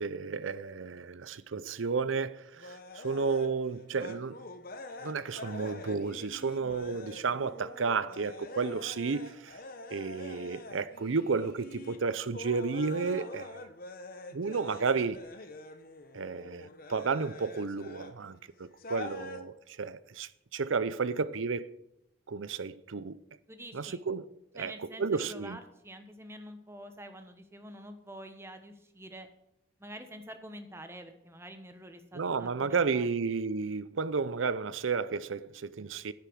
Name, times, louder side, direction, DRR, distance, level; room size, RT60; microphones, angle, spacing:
voice 1, 0.0-4.4 5.0-9.6 9.9-13.6 14.3-15.2 16.1-21.7 22.3-23.2 23.7-24.3 24.5-24.7 25.0-25.6 32.1-36.1, right 5 dB, 75° right, 0.6 m, -32 dB
sound 1, 2.6-18.2 18.8-19.4, left 2 dB, 45° left, 1.0 m, -45 dB
voice 2, 23.5-24.0 24.5-29.3 29.8-33.1, right 1 dB, 10° right, 1.0 m, -47 dB
10.5 x 8.4 x 6.2 m
head